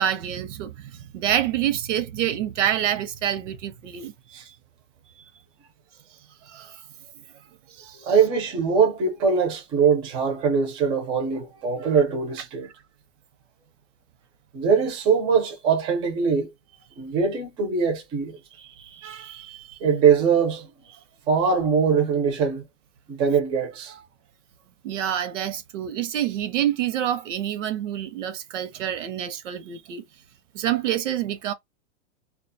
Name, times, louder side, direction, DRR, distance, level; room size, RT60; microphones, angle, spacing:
voice 1, 0.0-4.6 5.2-5.3 6.5-6.7 7.8-8.1 18.6-19.8 23.9-24.0 24.8-30.0 30.5-31.5, right 11 dB, 85° right, 0.7 m, -28 dB
voice 2, 8.1-12.7 14.5-16.5 17.0-18.4 19.8-20.7 21.3-22.6 23.1-23.9, right 6 dB, 15° right, 0.4 m, -22 dB
2.4 x 2.2 x 2.5 m
supercardioid pair, 160°, 36 cm